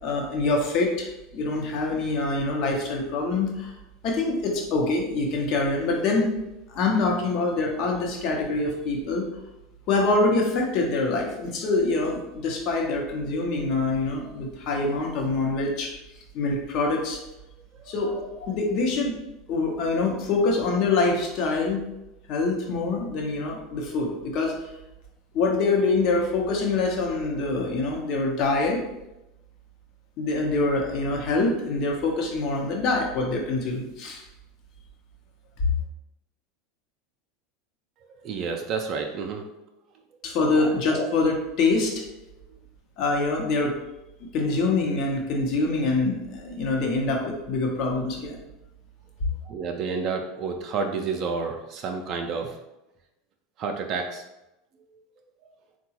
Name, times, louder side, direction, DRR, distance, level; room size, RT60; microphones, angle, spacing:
voice 1, 0.0-3.7 4.0-6.3 6.7-9.3 9.9-15.9 16.3-17.2 17.9-19.2 19.5-21.8 22.3-24.6 25.3-28.8 30.2-34.2 40.2-42.0 43.0-43.7 44.2-48.4 49.2-49.3, left 3 dB, 55° left, 0 dB, 0.8 m, -25 dB
voice 2, 38.0-39.4 40.6-40.7 49.4-52.6 53.6-54.2 55.4-55.5, right 5 dB, 50° right, 4 dB, 0.4 m, -30 dB
3.7 x 2.2 x 2.9 m, 0.93 s
hypercardioid pair, 85°, 0 cm